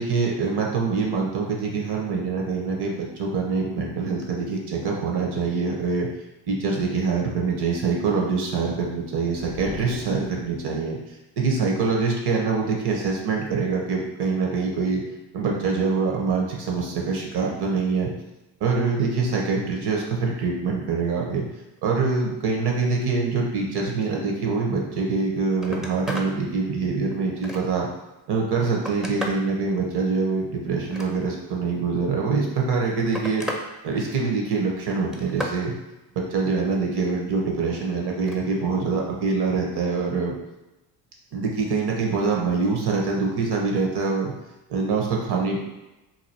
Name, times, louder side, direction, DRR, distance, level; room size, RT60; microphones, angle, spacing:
voice 1, 0.0-6.1 6.5-11.0 11.4-15.0 15.3-18.1 18.6-21.5 21.8-27.9 28.3-33.5 33.8-35.7 36.3-40.3 41.3-44.3 44.7-45.6, right 4 dB, 60° right, 0 dB, 1.1 m, -24 dB
sound 1, 9.4-11.0, left 5 dB, 60° left, 0.6 m, -39 dB
Telephone, 25.2-25.3 25.5-26.3 26.8-27.9 28.5-29.5 30.7-31.5 32.5-33.7 34.0-34.5 34.9-35.6 38.1-38.4 39.8-40.0, equal, ahead, 0.5 m, -34 dB
3.0 x 2.4 x 4.2 m, 1.0 s
supercardioid pair, 70°, 46 cm